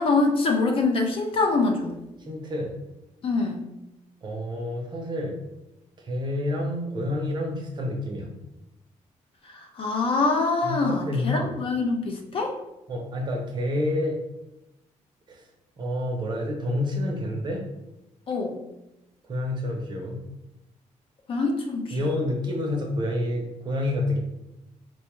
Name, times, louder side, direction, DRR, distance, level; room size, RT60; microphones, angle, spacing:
voice 1, 0.0-1.9 3.2-3.6 9.8-12.5 18.3-18.6 21.3-22.0, left 3 dB, 45° left, 2 dB, 0.5 m, -24 dB
voice 2, 2.2-2.7 4.2-5.4 6.0-8.3 10.6-11.5 12.9-14.2 15.3-15.5 15.8-17.7 19.3-20.2 21.9-24.2, left 1 dB, 35° right, 0 dB, 0.6 m, -28 dB
4.2 x 2.2 x 3.0 m, 0.92 s
cardioid pair, 160°, 13 cm